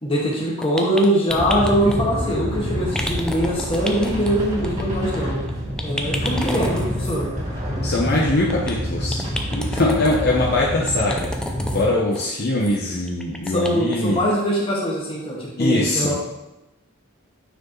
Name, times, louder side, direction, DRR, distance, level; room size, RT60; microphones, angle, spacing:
voice 1, 0.0-5.4 5.8-7.3 13.5-16.2, equal, 25° left, -5 dB, 1.8 m, -22 dB
sound 1, 0.6-1.9 2.9-4.3 4.6-4.8 5.1-5.2 5.5-5.6 5.8-7.2 8.1-8.7 9.1-10.2 10.9-11.9 12.1-12.3 12.6-12.8 13.1-14.0 14.3-14.4 14.8-14.9, left 1 dB, 5° left, 0.5 m, -31 dB
sound 2, 1.3-11.9, equal, 35° right, 1.9 m, -27 dB
voice 2, 7.8-9.2 9.5-11.3 11.7-14.2 15.6-16.1, left 2 dB, 50° left, -4 dB, 0.9 m, -22 dB
9.2 x 4.7 x 3.1 m, 0.98 s
head